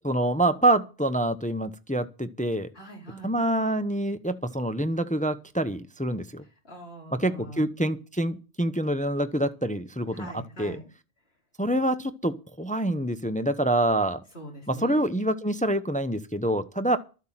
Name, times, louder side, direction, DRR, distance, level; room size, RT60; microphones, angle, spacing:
voice 1, 0.0-2.7 3.2-6.4 7.2-10.3 10.6-10.8 11.6-14.2 14.7-17.0, right 1 dB, 10° left, 0.8 m, -26 dB
voice 2, 2.7-3.3 6.6-7.7 10.1-10.9 14.3-15.1, right 1 dB, 65° left, 4.8 m, -43 dB
13.0 x 8.2 x 7.4 m
omnidirectional pair, 1.1 m